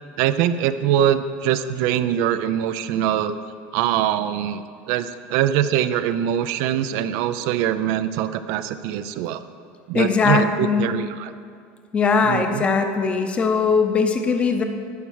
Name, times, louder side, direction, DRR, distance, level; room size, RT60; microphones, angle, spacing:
voice 1, 0.2-3.3 3.7-9.4 9.9-11.3 12.2-12.6, right 10 dB, 65° right, 12 dB, 0.4 m, -23 dB
voice 2, 9.9-11.0 11.9-14.6, left 5 dB, 25° left, 6 dB, 0.7 m, -20 dB
11.0 x 4.5 x 6.3 m, 2.2 s
cardioid pair, 145°, 5 cm